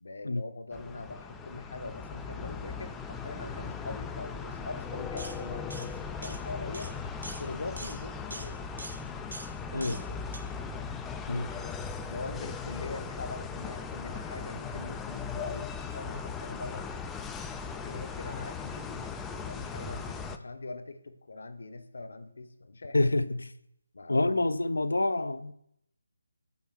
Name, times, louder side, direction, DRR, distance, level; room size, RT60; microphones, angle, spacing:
voice 1, 0.0-6.9 7.4-8.6 9.7-10.2 11.5-17.2 17.8-19.1 19.4-23.1 23.9-24.5, left 3 dB, 60° left, 0.8 m, -42 dB
sound 1, 0.7-20.4, left 5 dB, 10° left, 0.3 m, -38 dB
sound 2, 5.2-5.4 5.7-5.9 6.2-6.4 6.7-6.9 7.2-7.4 7.8-8.0 8.3-8.5 8.8-9.0 9.3-9.5 9.8-10.0 10.3-10.4, right 2 dB, 70° right, 1.2 m, -42 dB
voice 2, 9.7-10.0 11.3-11.5 22.9-23.5 24.1-25.5, left 2 dB, 75° left, 0.4 m, -27 dB
5.7 x 4.2 x 6.0 m
figure-of-eight pair, 155°, 0 cm